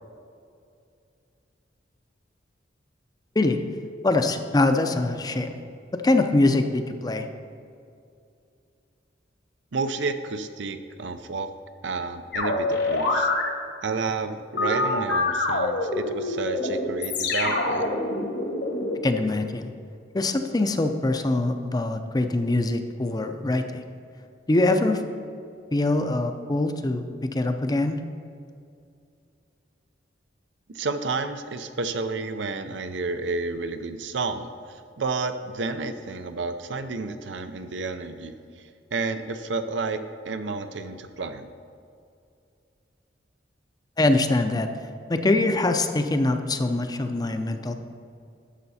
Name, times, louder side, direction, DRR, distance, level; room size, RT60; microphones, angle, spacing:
voice 1, 4.0-5.6 5.9-7.3 19.0-19.7 20.1-23.8 24.5-25.0 25.7-28.0 44.0-44.7 45.1-47.7, left 2 dB, 20° left, 7 dB, 0.5 m, -23 dB
voice 2, 9.7-11.5 11.8-13.3 13.8-17.9 30.7-38.3 38.9-40.0 40.3-41.5, right 3 dB, 80° right, 9 dB, 0.6 m, -30 dB
sound 1, 12.3-13.4 14.5-19.0, left 2 dB, 65° left, 1.4 m, -25 dB
11.5 x 6.7 x 4.2 m, 2.4 s
head